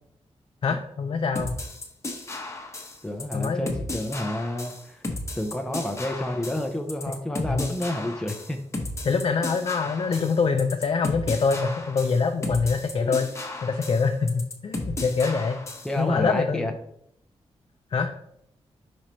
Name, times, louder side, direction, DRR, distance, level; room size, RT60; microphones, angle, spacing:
voice 1, 0.6-1.5 3.3-3.7 7.5-7.7 9.0-15.6 16.0-16.7 17.9-18.1, left 5 dB, 50° left, 4 dB, 0.5 m, -25 dB
sound 1, 1.4-15.9, left 2 dB, 25° left, 1.0 m, -34 dB
voice 2, 3.0-5.0 5.3-8.6 12.9-13.1 15.8-16.7, left 1 dB, 5° left, 4 dB, 0.6 m, -30 dB
5.2 x 4.7 x 4.3 m, 0.73 s
wide cardioid pair, 130°, 11 cm